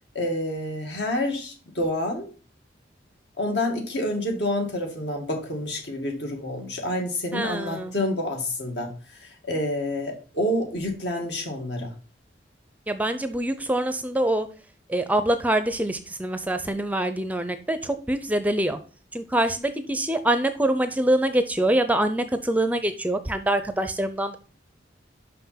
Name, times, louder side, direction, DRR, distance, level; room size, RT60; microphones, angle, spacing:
voice 1, 0.1-2.3 3.4-11.9, left 1 dB, 70° left, 2 dB, 2.0 m, -28 dB
voice 2, 7.3-7.9 12.9-14.5 14.9-18.8 19.1-24.4, right 1 dB, 10° right, 10 dB, 0.5 m, -25 dB
5.7 x 5.6 x 5.7 m, 0.38 s
head